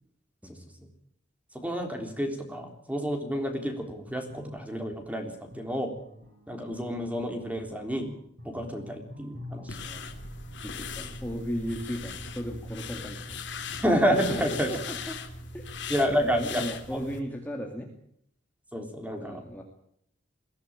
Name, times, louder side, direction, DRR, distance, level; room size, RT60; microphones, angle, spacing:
voice 1, 0.5-0.9 1.5-6.0 6.5-8.1 8.4-9.9 11.0-11.1 13.8-14.7 15.9-16.7 16.9-17.0 18.7-19.4, equal, 5° right, 5 dB, 3.6 m, -29 dB
sound 1, 4.1-9.8, left 1 dB, 50° right, 6.3 m, -47 dB
sound 2, 9.7-17.2, left 4 dB, 65° left, 2.8 m, -39 dB
voice 2, 10.6-13.4 14.1-15.2 15.5-15.6 16.2-17.9 19.2-19.6, equal, 10° left, 1 dB, 2.4 m, -36 dB
22.0 x 16.5 x 8.9 m, 0.68 s
head